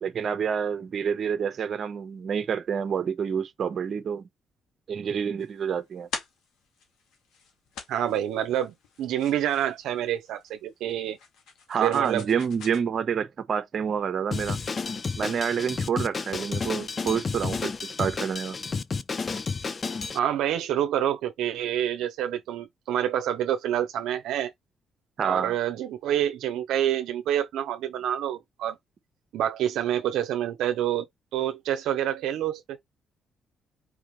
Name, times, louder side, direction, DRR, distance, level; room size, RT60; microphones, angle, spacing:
voice 1, 0.0-4.2 4.9-6.1 11.7-14.6 15.2-18.6 25.2-25.5, right 7 dB, 50° right, 1.0 m, -28 dB
sound 1, 5.4-12.8, left 5 dB, 85° left, 1.9 m, -44 dB
voice 2, 7.9-11.2 11.8-12.3 20.1-24.5 25.2-28.8 29.3-31.1 31.3-32.8, right 11 dB, 85° right, 0.7 m, -27 dB
Drum kit, 14.3-20.2, left 4 dB, 35° left, 0.5 m, -31 dB
4.8 x 3.5 x 3.1 m
cardioid pair, 90°, 0 cm